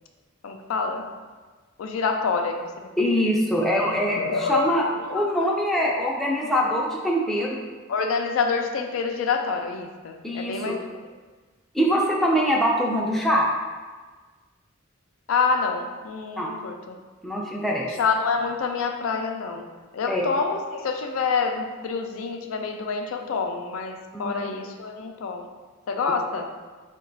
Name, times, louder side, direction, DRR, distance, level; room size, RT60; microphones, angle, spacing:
voice 1, 0.4-1.0 1.8-2.7 3.6-5.3 7.9-10.8 15.3-17.0 18.0-19.7 19.9-25.5 25.9-26.5, left 5 dB, 80° left, 4 dB, 0.4 m, -27 dB
voice 2, 3.0-7.6 10.2-10.7 11.7-13.5 16.4-16.5 17.2-17.9 20.1-20.3 24.1-24.5, equal, ahead, -3 dB, 0.4 m, -23 dB
4.0 x 2.2 x 3.8 m, 1.4 s
head